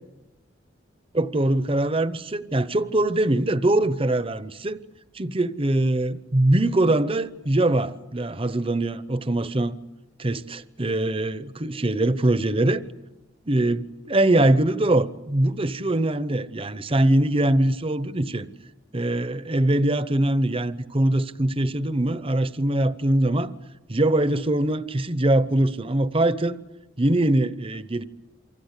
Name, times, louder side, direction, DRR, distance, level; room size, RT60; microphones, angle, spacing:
voice 1, 1.1-4.8 5.1-9.8 10.2-12.8 13.5-18.5 18.9-23.5 23.9-26.6 27.0-28.0, right 1 dB, 30° right, 0.9 m, -22 dB
28.5 x 24.5 x 8.3 m
head